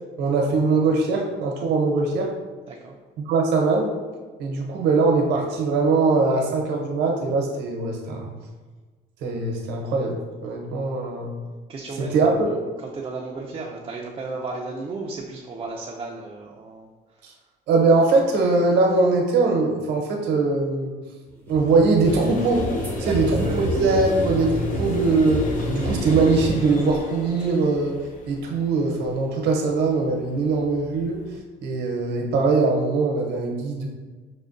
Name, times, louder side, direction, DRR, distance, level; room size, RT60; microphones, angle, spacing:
voice 1, 0.2-2.3 3.2-3.9 4.4-8.3 9.2-11.3 12.0-12.3 17.2-17.3 17.7-20.9 21.5-22.6 23.0-24.5 24.8-27.9 28.3-31.2 31.6-33.9, right 3 dB, 80° right, 1 dB, 0.8 m, -21 dB
voice 2, 2.7-3.0 11.7-17.2 23.0-24.0, right 3 dB, 30° right, -2 dB, 0.4 m, -34 dB
sound 1, 21.4-26.5, equal, 10° left, 0.8 m, -29 dB
sound 2, 22.0-31.4, left 2 dB, 50° left, 0.6 m, -34 dB
6.2 x 2.2 x 2.5 m, 1.4 s
cardioid pair, 110°, 17 cm